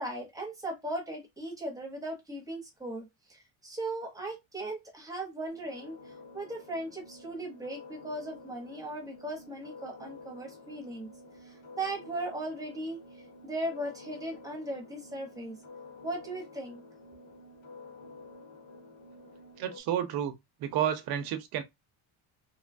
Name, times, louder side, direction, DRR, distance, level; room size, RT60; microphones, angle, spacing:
voice 1, 0.0-11.1 11.4-15.6 16.0-16.8, right 1 dB, 5° right, 0.8 m, -38 dB
sound 1, 5.5-19.8, left 3 dB, 80° left, 1.4 m, -50 dB
voice 2, 19.6-21.6, right 10 dB, 50° right, 0.6 m, -31 dB
2.7 x 2.3 x 2.5 m
cardioid pair, 160°, 47 cm